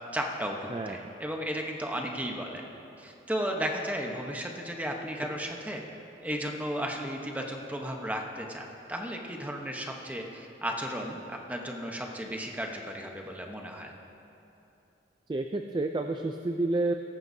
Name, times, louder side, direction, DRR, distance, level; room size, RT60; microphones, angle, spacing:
voice 1, 0.1-2.7 3.0-5.8 6.2-13.9, equal, 10° right, 1 dB, 0.9 m, -34 dB
voice 2, 0.7-1.1 15.3-16.9, right 2 dB, 25° right, 5 dB, 0.3 m, -30 dB
18.0 x 14.5 x 2.7 m, 3.0 s
head